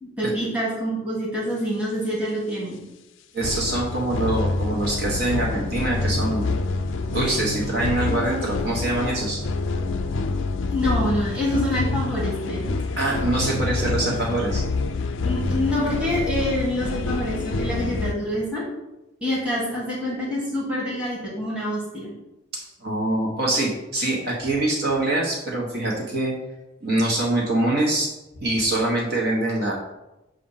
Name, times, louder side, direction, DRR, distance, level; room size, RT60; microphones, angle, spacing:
voice 1, 0.0-2.8 10.7-12.7 15.2-18.6 19.2-22.1, equal, 5° right, -7 dB, 1.5 m, -26 dB
voice 2, 3.3-6.5 7.1-9.4 13.0-14.6 22.5-26.3 26.8-28.1 28.4-29.7, right 2 dB, 60° right, -3 dB, 1.3 m, -24 dB
sound 1, 3.4-18.1, left 3 dB, 85° left, 0.4 m, -27 dB
7.5 x 2.6 x 5.6 m, 0.97 s
head